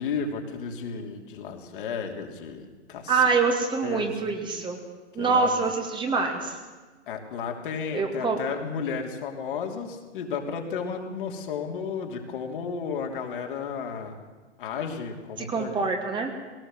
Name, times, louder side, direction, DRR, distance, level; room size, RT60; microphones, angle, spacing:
voice 1, 0.0-3.2 3.8-4.3 5.2-5.5 7.1-14.2 14.6-15.8, left 6 dB, 50° left, 3 dB, 3.2 m, -33 dB
voice 2, 3.1-4.8 5.2-6.6 7.9-8.4 15.4-16.3, right 4 dB, 15° right, 3 dB, 2.2 m, -25 dB
20.5 x 18.5 x 7.9 m, 1.3 s
figure-of-eight pair, 115°, 35 cm